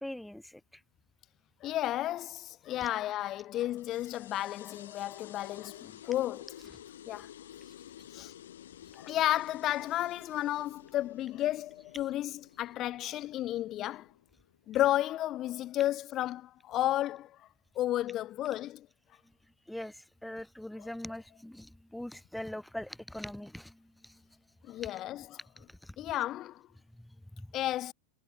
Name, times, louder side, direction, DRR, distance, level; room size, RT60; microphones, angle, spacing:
voice 1, 0.0-0.6 2.8-2.9 19.7-24.2 24.8-24.9 25.8-25.9 27.0-27.5, left 1 dB, 5° left, 1.5 m, -42 dB
voice 2, 1.6-6.5 7.1-7.3 8.1-8.3 8.9-14.1 14.7-17.5 17.7-18.9 20.8-20.9 24.7-25.4 26.0-26.6 27.5-27.9, left 14 dB, 40° left, 1.1 m, -32 dB
sound 1, 3.8-14.8, left 11 dB, 70° left, 6.8 m, -52 dB
hypercardioid pair, 95°, 0 cm